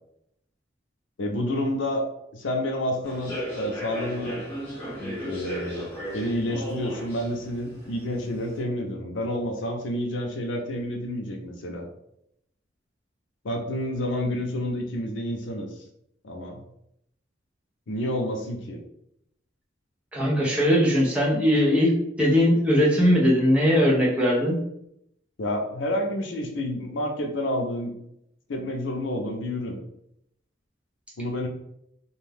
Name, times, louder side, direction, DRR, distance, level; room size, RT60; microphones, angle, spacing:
voice 1, 1.2-2.0 2.3-4.4 5.0-5.9 6.1-11.9 13.4-15.7 16.2-16.6 17.9-18.8 25.4-27.9 28.5-29.8 31.2-31.5, left 1 dB, 85° left, 2 dB, 0.6 m, -29 dB
Human voice / Subway metro underground, 3.0-8.6, equal, 15° left, 1.3 m, -36 dB
voice 2, 20.1-21.9 22.2-24.6, equal, 5° right, -5 dB, 0.7 m, -20 dB
2.6 x 2.2 x 3.3 m, 0.76 s
head